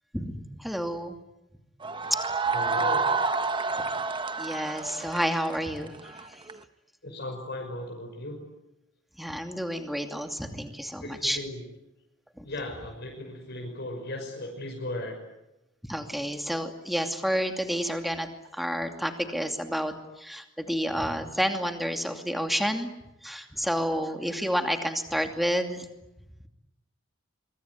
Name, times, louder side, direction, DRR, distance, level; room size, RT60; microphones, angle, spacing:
voice 1, 0.1-1.2 2.1-2.2 3.8-3.9 4.4-6.4 9.2-11.4 12.4-12.5 15.8-22.9 23.2-25.9, equal, ahead, 5 dB, 2.6 m, -30 dB
sound 1, 1.8-6.6, right 4 dB, 25° right, 1.1 m, -29 dB
voice 2, 2.5-3.1 7.0-8.4 11.0-11.6 12.4-15.2, left 1 dB, 55° left, 1 dB, 6.0 m, -36 dB
25.0 x 24.5 x 9.8 m, 0.93 s
head